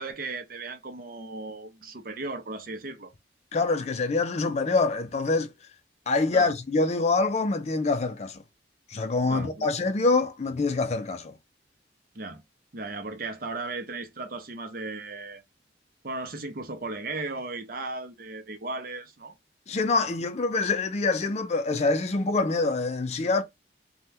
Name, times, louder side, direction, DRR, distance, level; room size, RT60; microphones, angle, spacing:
voice 1, 0.0-3.1 6.3-6.5 9.3-9.7 12.1-12.4 12.7-15.4 16.0-19.3, right 3 dB, 55° right, 0.6 m, -36 dB
voice 2, 3.5-5.5 6.1-8.4 8.9-11.4 19.7-23.4, left 3 dB, 40° left, 0.4 m, -25 dB
2.7 x 2.2 x 3.3 m
head